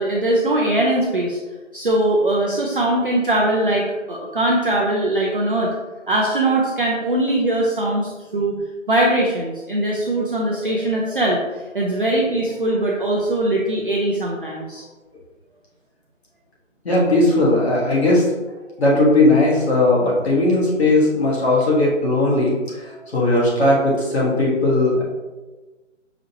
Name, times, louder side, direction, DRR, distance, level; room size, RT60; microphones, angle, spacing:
voice 1, 0.0-1.4 1.7-5.7 6.1-8.6 8.9-14.8 22.9-23.1, right 1 dB, 45° right, -2 dB, 0.5 m, -21 dB
voice 2, 16.8-18.2 18.8-22.9 23.1-25.0, left 2 dB, 55° left, -5 dB, 1.5 m, -17 dB
5.0 x 2.9 x 2.8 m, 1.2 s
figure-of-eight pair, 165°, 39 cm